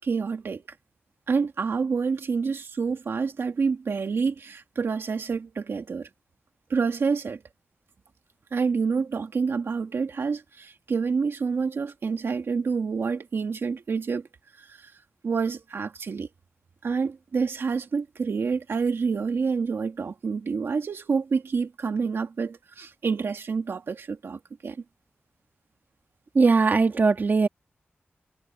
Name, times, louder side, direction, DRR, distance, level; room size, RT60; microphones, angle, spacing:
voice 1, 0.0-0.6 1.3-6.1 6.7-7.4 8.5-14.3 14.6-14.9 15.2-16.3 16.8-24.8, right 5 dB, 75° right, 1.7 m, -28 dB
voice 2, 26.3-27.5, right 4 dB, 50° right, 2.0 m, -20 dB
wide cardioid pair, 125°, 4 cm